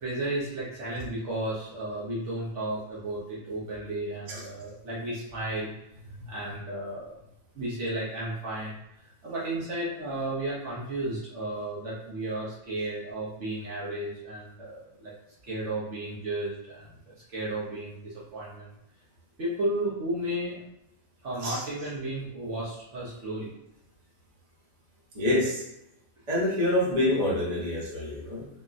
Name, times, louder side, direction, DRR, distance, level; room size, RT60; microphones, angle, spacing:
voice 1, 0.0-5.7 6.3-7.2 7.5-8.8 9.2-15.1 15.4-18.7 19.4-20.6 21.2-23.5, right 1 dB, 60° right, -7 dB, 1.0 m, -33 dB
voice 2, 25.1-25.6 26.3-28.5, left 1 dB, 35° right, -6 dB, 0.9 m, -27 dB
3.7 x 2.2 x 2.5 m, 0.83 s
omnidirectional pair, 1.5 m